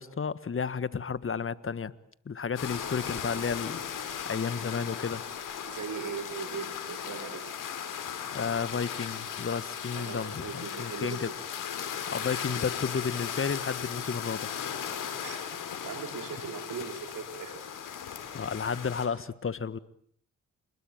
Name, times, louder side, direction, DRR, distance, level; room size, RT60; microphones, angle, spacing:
voice 1, 0.0-1.9 2.2-5.2 8.3-11.3 12.1-14.5 18.3-19.8, left 6 dB, 40° left, 17 dB, 1.6 m, -32 dB
sound 1, 2.6-19.1, left 8 dB, 80° left, 4.5 m, -37 dB
voice 2, 3.1-3.5 5.6-7.6 9.9-11.4 15.2-17.6, right 6 dB, 75° right, 7 dB, 4.2 m, -40 dB
27.5 x 21.0 x 8.9 m, 0.63 s
supercardioid pair, 55°, 31 cm